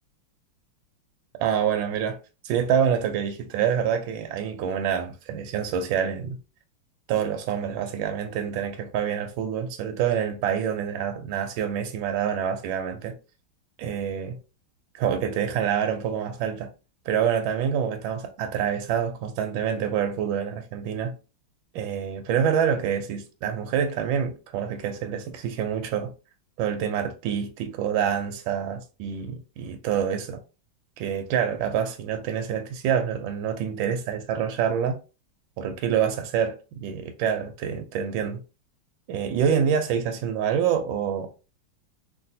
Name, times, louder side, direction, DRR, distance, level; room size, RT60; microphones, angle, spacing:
voice 1, 1.4-2.2 2.4-6.4 7.1-13.1 13.8-14.3 14.9-16.7 17.1-21.1 21.7-26.1 26.6-30.4 31.0-35.0 35.6-38.4 39.1-41.3, right 8 dB, 75° right, 1.3 m, -26 dB
3.3 x 2.6 x 2.6 m
omnidirectional pair, 2.2 m